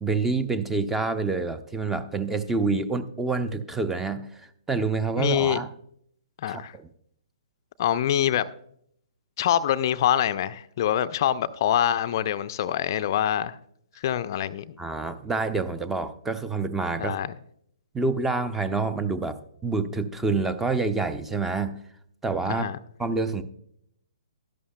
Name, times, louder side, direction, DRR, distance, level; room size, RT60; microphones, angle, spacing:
voice 1, 0.0-5.7 6.5-6.8 14.8-17.2 17.9-21.8 22.2-22.7 23.0-23.4, right 4 dB, 10° right, 0.6 m, -27 dB
voice 2, 5.2-5.6 6.4-6.7 7.8-8.5 9.4-13.6 14.0-14.8 17.0-17.3 22.5-22.8, left 10 dB, 45° left, 0.4 m, -25 dB
12.5 x 11.0 x 2.2 m
figure-of-eight pair, 125°, 3 cm